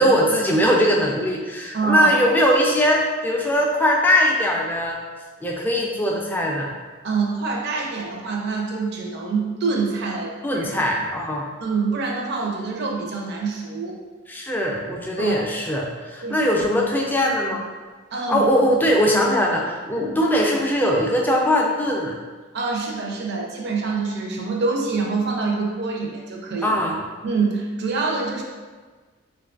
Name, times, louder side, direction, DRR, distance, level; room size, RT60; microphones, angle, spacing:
voice 1, 0.0-5.0 5.4-6.7 10.4-11.5 14.3-17.6 18.3-22.1 26.6-27.0, equal, 10° left, -1 dB, 0.3 m, -20 dB
voice 2, 1.7-2.2 7.0-10.6 11.0-11.1 11.6-14.0 15.2-15.4 16.2-16.5 18.1-18.5 20.0-20.1 22.5-26.7 27.2-28.4, right 4 dB, 55° right, 0 dB, 0.5 m, -25 dB
3.7 x 2.3 x 2.4 m, 1.4 s
head